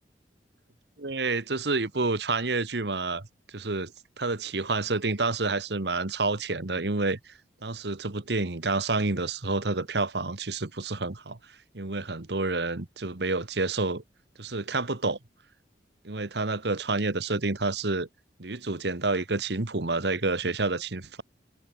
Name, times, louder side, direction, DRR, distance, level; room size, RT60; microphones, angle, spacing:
voice 1, 1.0-3.2 3.5-7.3 7.6-11.4 11.7-14.0 14.4-15.2 16.0-18.1 18.4-21.2, right 3 dB, 70° right, 1.5 m, -29 dB
head